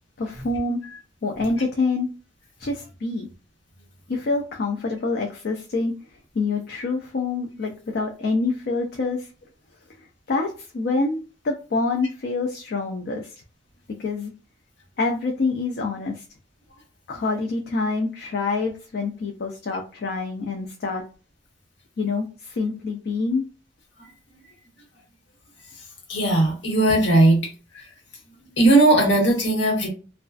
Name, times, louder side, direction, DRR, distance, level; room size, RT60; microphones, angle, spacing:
voice 1, 0.2-0.8 1.2-2.1 2.6-3.3 4.1-5.9 6.3-9.3 10.0-13.3 14.0-14.3 15.0-16.2 17.1-21.0 22.0-23.4, left 3 dB, 60° left, 1 dB, 0.4 m, -26 dB
voice 2, 26.1-27.4 27.7-27.8 28.6-29.9, right 2 dB, 80° left, -1 dB, 1.2 m, -18 dB
2.3 x 2.3 x 2.3 m, 0.34 s
head